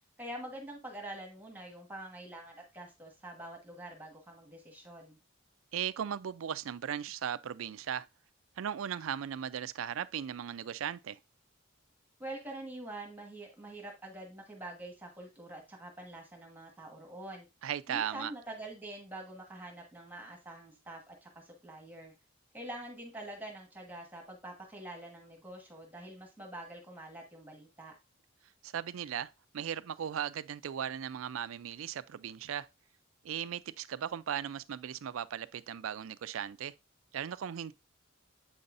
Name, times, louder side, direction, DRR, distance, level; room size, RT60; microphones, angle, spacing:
voice 1, 0.2-5.2 12.2-17.5 17.9-22.1 22.5-27.9, right 1 dB, 10° right, 1.3 m, -45 dB
voice 2, 5.7-8.1 8.6-11.2 17.6-18.3 28.6-32.7 33.2-36.7 37.1-37.7, right 9 dB, 75° right, 0.4 m, -37 dB
7.8 x 5.4 x 2.5 m
head